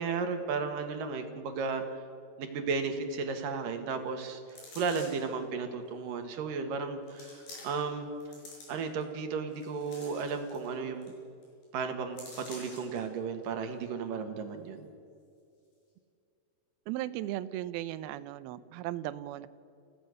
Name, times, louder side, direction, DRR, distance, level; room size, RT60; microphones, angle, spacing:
voice 1, 0.0-1.8 2.4-4.4 4.8-8.1 8.7-11.1 11.7-14.9, right 5 dB, 60° right, 6 dB, 3.1 m, -34 dB
sound 1, 4.5-5.3 6.1-6.2 7.1-7.9 8.2-9.0 9.5-10.7 11.0-11.1 11.4-11.6 12.2-13.0 13.4-13.5, left 2 dB, 60° left, 8.0 m, -49 dB
voice 2, 16.9-19.5, right 14 dB, 75° right, 14 dB, 2.4 m, -36 dB
29.5 x 17.0 x 6.7 m, 2.4 s
omnidirectional pair, 4.9 m